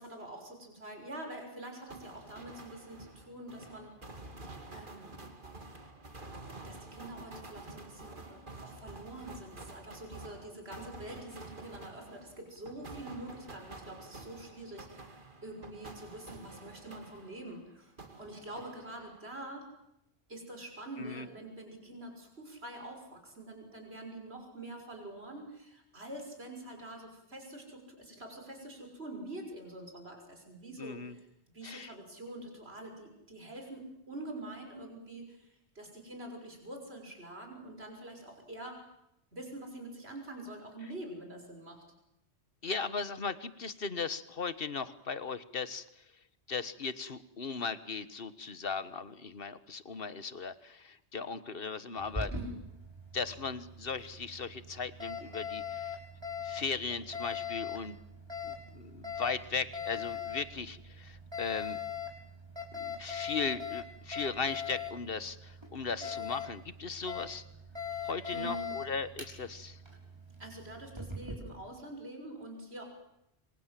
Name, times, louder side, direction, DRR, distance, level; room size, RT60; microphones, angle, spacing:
voice 1, 0.0-4.0 4.7-5.2 6.6-19.7 20.3-31.3 31.5-38.9 39.3-41.8 52.3-52.6 67.8-68.8 70.4-72.8, right 1 dB, 65° right, 3 dB, 6.4 m, -46 dB
sound 1, 1.9-17.6 18.0-19.3, right 2 dB, 50° right, 2.6 m, -49 dB
voice 2, 30.8-31.1 31.6-31.9 42.6-45.8 46.5-52.3 53.1-56.0 56.4-58.0 58.4-61.8 62.7-67.4 68.0-69.8, left 5 dB, 55° left, 14 dB, 1.6 m, -37 dB
Alarm, 52.0-71.4, left 6 dB, 25° right, 6.2 m, -41 dB
27.5 x 26.5 x 7.6 m, 0.81 s
omnidirectional pair, 1.1 m